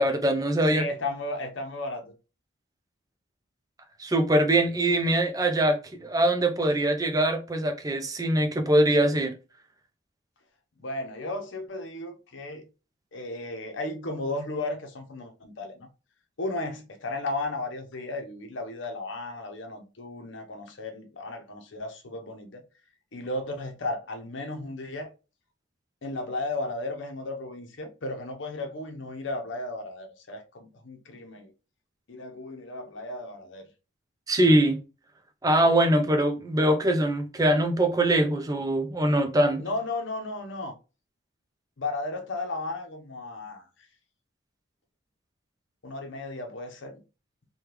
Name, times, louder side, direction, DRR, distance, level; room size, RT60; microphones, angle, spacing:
voice 1, 0.0-0.8 4.0-9.3 34.3-34.8 35.4-39.6, right 1 dB, 20° right, 0.4 m, -23 dB
voice 2, 0.7-2.1 10.8-12.7 13.1-15.9 16.4-22.6 23.1-25.1 26.0-31.5 32.1-33.7 39.6-40.7 41.8-43.7 45.8-47.0, left 2 dB, 65° left, 0.7 m, -34 dB
3.4 x 2.2 x 2.9 m
head